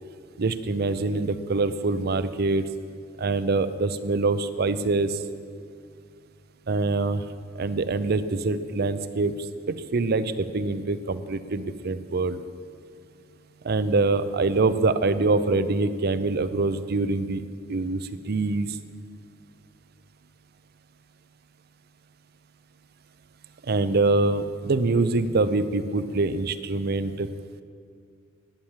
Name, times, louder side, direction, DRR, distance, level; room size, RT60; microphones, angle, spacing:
voice 1, 0.4-2.7 3.2-5.2 6.7-7.2 7.6-9.3 9.7-12.4 13.6-17.4 17.7-18.7 23.7-27.3, right 3 dB, 55° right, 13 dB, 0.6 m, -24 dB
11.5 x 8.8 x 7.3 m, 2.3 s
head